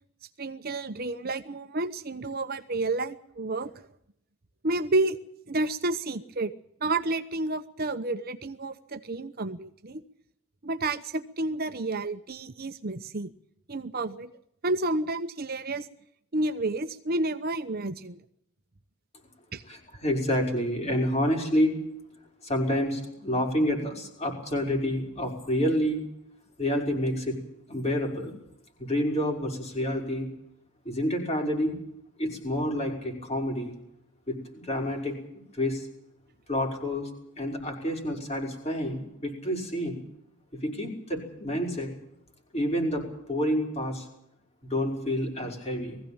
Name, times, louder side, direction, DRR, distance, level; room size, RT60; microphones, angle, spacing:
voice 1, 0.4-3.7 4.6-5.2 5.5-6.5 6.8-10.0 10.6-13.3 13.7-14.3 14.6-15.9 16.3-18.2 19.5-19.6, right 2 dB, 45° right, 9 dB, 0.9 m, -30 dB
voice 2, 19.7-21.8 22.4-26.0 26.6-27.4 27.7-28.3 28.8-30.3 30.8-31.8 32.2-33.7 34.3-35.2 35.5-35.9 36.5-37.1 37.4-40.0 40.6-41.9 42.5-44.1 44.6-46.0, equal, 30° left, 1 dB, 5.6 m, -28 dB
21.0 x 15.5 x 8.8 m, 0.76 s
head